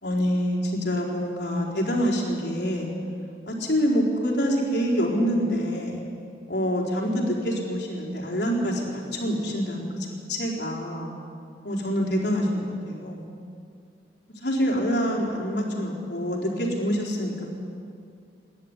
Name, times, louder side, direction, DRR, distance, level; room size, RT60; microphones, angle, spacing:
voice 1, 0.0-2.9 3.5-6.0 6.5-11.1 11.6-13.3 14.4-17.5, equal, 60° left, -2 dB, 4.2 m, -26 dB
27.0 x 11.5 x 9.9 m, 2.4 s
head